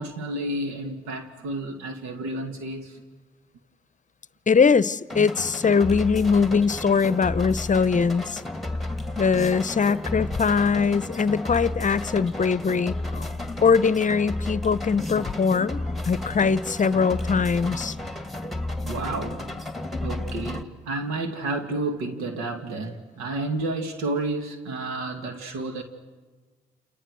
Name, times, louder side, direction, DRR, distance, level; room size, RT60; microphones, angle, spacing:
voice 1, 0.0-3.0 18.5-19.4 20.0-25.8, right 2 dB, 90° right, 6 dB, 2.1 m, -31 dB
voice 2, 4.5-8.4 9.2-13.3 13.6-18.0, left 5 dB, 35° left, 17 dB, 0.8 m, -22 dB
sound 1, 5.1-20.6, left 2 dB, ahead, 2.1 m, -32 dB
28.5 x 28.5 x 6.3 m, 1.4 s
supercardioid pair, 50°, 21 cm